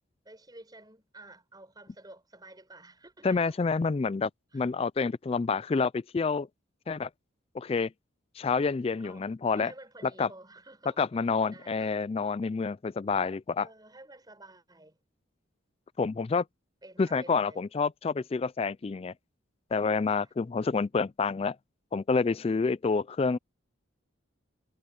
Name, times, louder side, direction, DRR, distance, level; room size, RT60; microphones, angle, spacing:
voice 1, 0.2-3.6 4.5-4.6 9.0-9.3 9.5-11.0 11.5-11.9 13.6-15.0 16.8-17.6 20.1-20.3, right 2 dB, 20° right, 6.5 m, -51 dB
voice 2, 3.2-6.5 6.9-7.1 7.5-7.9 8.4-9.7 10.2-10.3 11.0-13.7 16.0-16.4 17.0-19.1 19.7-21.6 21.9-23.4, left 4 dB, 30° left, 0.3 m, -28 dB
head